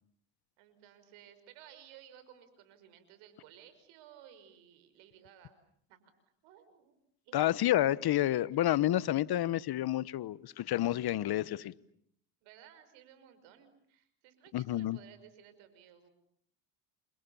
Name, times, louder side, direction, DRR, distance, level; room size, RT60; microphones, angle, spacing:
voice 1, 0.6-5.6 5.9-6.0 6.4-6.9 7.2-7.6 12.4-16.1, right 10 dB, 80° right, 5.8 m, -57 dB
voice 2, 7.3-11.7 14.5-15.0, left 13 dB, 50° left, 1.2 m, -29 dB
29.5 x 27.0 x 7.1 m
supercardioid pair, 85°, 47 cm